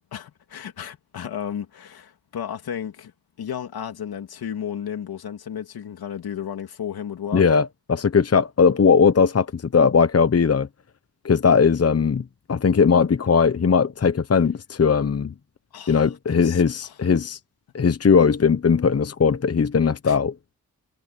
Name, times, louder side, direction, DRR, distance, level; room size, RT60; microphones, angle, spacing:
voice 1, 0.1-3.1 3.4-7.5 15.7-16.9 20.0-20.2, left 9 dB, 90° left, 3.0 m, -33 dB
voice 2, 7.3-10.7 11.2-15.3 15.9-17.4 17.7-20.3, left 6 dB, 40° left, 1.1 m, -19 dB
cardioid pair, 55°, 36 cm